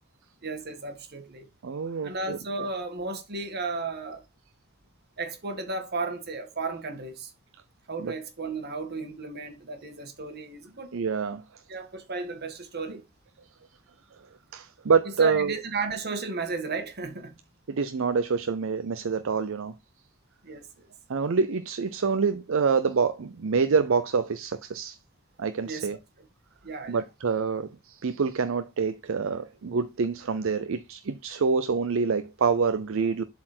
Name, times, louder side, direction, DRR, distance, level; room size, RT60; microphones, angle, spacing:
voice 1, 0.4-1.5 2.0-4.2 5.2-7.3 7.9-11.0 11.7-13.0 15.2-17.3 20.4-20.9 25.6-26.3 26.6-27.0, right 3 dB, 50° right, 1.6 m, -34 dB
voice 2, 1.6-2.4 8.0-8.1 10.9-11.4 14.5-15.5 17.7-19.7 21.1-25.0 25.4-26.0 26.9-33.2, right 5 dB, 65° right, 0.5 m, -26 dB
7.6 x 4.3 x 4.3 m
head